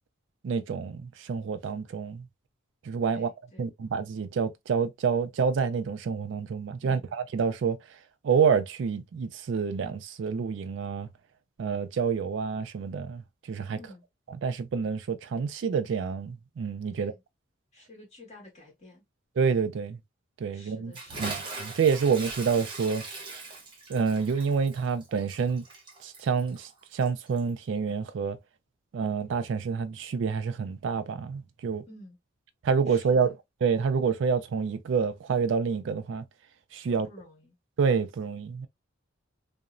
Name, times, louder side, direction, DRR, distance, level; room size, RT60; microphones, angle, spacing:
voice 1, 0.4-2.3 2.8-3.3 3.6-7.8 8.2-11.1 11.6-13.2 13.5-13.8 14.4-17.1 19.4-20.0 20.4-20.9 21.2-23.0 23.9-25.6 26.0-28.4 28.9-31.8 32.6-33.3 33.6-36.2 36.7-37.1 37.8-38.7, right 6 dB, 65° right, 0.3 m, -28 dB
voice 2, 3.1-3.7 6.8-7.1 13.8-14.0 16.9-17.2 17.7-19.0 20.5-21.4 31.8-32.2 32.9-33.4 36.9-37.5, left 1 dB, 35° left, 1.4 m, -51 dB
Bathtub (filling or washing) / Splash splatter, 20.9-27.5, right 3 dB, 25° right, 0.8 m, -40 dB
2.9 x 2.0 x 2.4 m
head